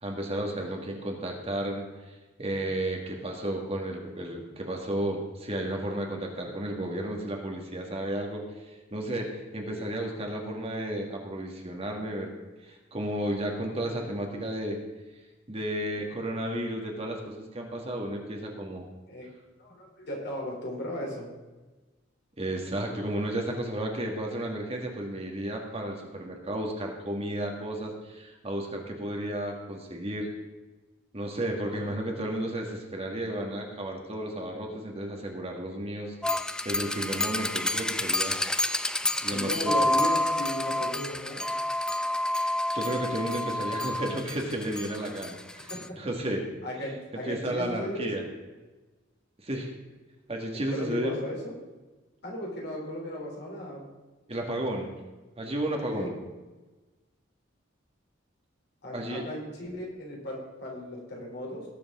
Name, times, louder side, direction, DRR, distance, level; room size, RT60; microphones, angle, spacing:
voice 1, 0.0-1.9 2.4-12.3 12.6-14.8 15.5-18.9 22.4-30.3 31.1-38.4 39.2-39.7 42.7-46.5 46.8-46.9 47.2-48.2 49.4-49.7 50.3-51.2 54.3-54.9 55.4-56.1 58.9-59.2, right 1 dB, 30° right, 1 dB, 1.8 m, -33 dB
voice 2, 19.6-21.3 31.8-31.9 39.3-41.4 45.7-46.0 46.6-48.3 50.5-51.5 52.2-53.9 55.9-56.1 58.8-61.7, equal, 60° left, -2 dB, 3.4 m, -36 dB
sound 1, 36.2-45.9, left 1 dB, 5° left, 0.3 m, -29 dB
18.5 x 6.9 x 3.7 m, 1.2 s
head